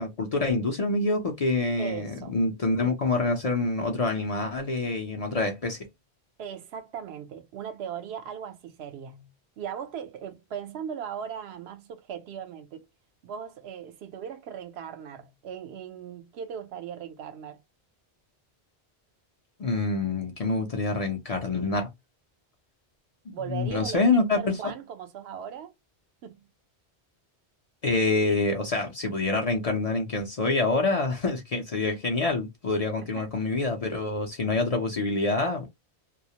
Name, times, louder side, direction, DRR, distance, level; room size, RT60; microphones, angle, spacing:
voice 1, 0.0-5.9 19.6-21.9 23.3-24.6 27.8-35.7, left 3 dB, 45° left, 0.5 m, -26 dB
voice 2, 1.8-2.3 6.4-9.3 9.6-12.9 13.2-17.6 23.3-24.0 24.3-25.7 26.2-26.5 33.0-33.2, right 8 dB, 75° right, 0.8 m, -38 dB
2.3 x 2.0 x 2.8 m
omnidirectional pair, 1.1 m